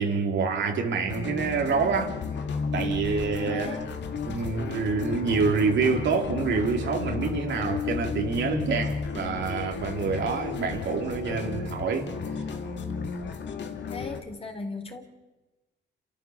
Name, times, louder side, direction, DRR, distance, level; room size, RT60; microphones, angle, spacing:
voice 1, 0.0-2.1 2.7-3.8 4.3-12.1, right 5 dB, 65° right, 2 dB, 3.6 m, -27 dB
sound 1, 1.1-14.2, left 5 dB, 60° left, 2.4 m, -33 dB
voice 2, 3.5-3.9 13.9-15.0, left 3 dB, 30° left, 4 dB, 3.7 m, -37 dB
29.0 x 14.0 x 7.2 m, 1.1 s
cardioid pair, 90°, 20 cm